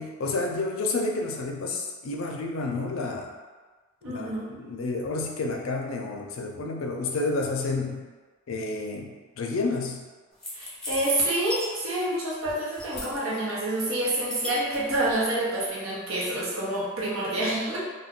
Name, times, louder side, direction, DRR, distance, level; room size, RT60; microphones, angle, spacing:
voice 1, 0.0-3.3 4.1-8.0 8.5-10.1, left 3 dB, 90° left, 2 dB, 0.4 m, -30 dB
voice 2, 4.0-4.5 10.5-17.8, right 1 dB, 85° right, -5 dB, 0.8 m, -28 dB
sound 1, 10.4-12.2 12.4-13.4 13.8-15.3, left 2 dB, 5° left, 0.6 m, -37 dB
2.3 x 2.2 x 3.5 m, 1.4 s
head